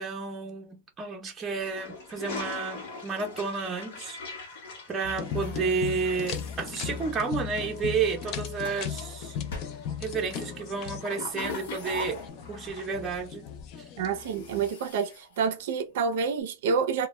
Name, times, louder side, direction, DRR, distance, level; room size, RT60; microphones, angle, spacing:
voice 1, 0.0-4.2 4.9-9.4 10.0-12.2 12.5-13.5, right 5 dB, 15° right, 0.6 m, -31 dB
Toilet flush, 1.6-12.3, left 4 dB, 55° left, 1.0 m, -42 dB
sound 1, 5.0-14.7, left 7 dB, 35° left, 0.4 m, -37 dB
sound 2, 5.2-7.4 8.2-8.9 9.5-10.4 11.1-13.3 13.6-13.7 14.1-16.1, left 1 dB, 75° left, 0.9 m, -45 dB
voice 2, 14.0-17.1, right 5 dB, 60° right, 0.5 m, -28 dB
2.1 x 2.1 x 3.0 m
supercardioid pair, 165°, 0 cm